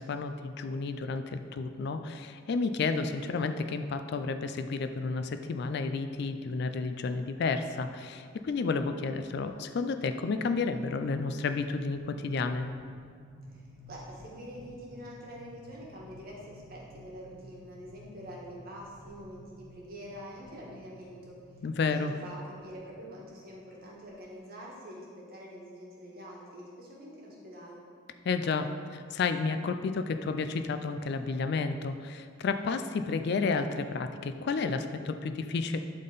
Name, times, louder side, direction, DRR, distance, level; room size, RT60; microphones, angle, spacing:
voice 1, 0.0-12.7 21.6-22.1 28.3-35.8, left 4 dB, 55° left, 8 dB, 0.3 m, -31 dB
sound 1, 6.2-6.3 6.7-6.8 7.1-7.4 7.8-24.1, equal, 5° right, 1.7 m, -53 dB
voice 2, 13.5-21.4 21.8-27.8, equal, 45° right, -3 dB, 1.4 m, -46 dB
11.0 x 3.7 x 3.9 m, 2.1 s
head